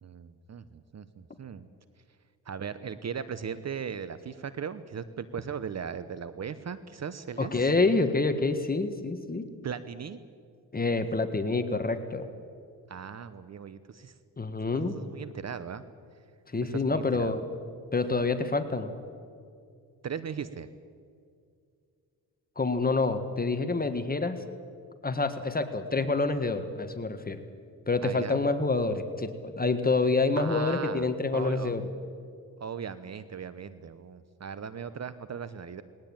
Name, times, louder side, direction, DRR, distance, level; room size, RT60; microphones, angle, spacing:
voice 1, 0.0-1.7 2.4-7.7 9.6-10.2 12.9-14.1 14.7-15.8 16.7-17.4 20.0-20.7 28.0-28.4 30.4-31.1 31.3-31.7 32.6-35.8, right 7 dB, 45° right, 13 dB, 0.9 m, -38 dB
voice 2, 7.4-9.5 10.7-12.3 14.4-14.9 16.5-17.4 17.9-18.9 22.5-24.4 25.0-27.4 27.9-31.8, left 3 dB, 25° left, 8 dB, 1.7 m, -27 dB
20.5 x 18.0 x 8.9 m, 2.3 s
cardioid pair, 90°, 38 cm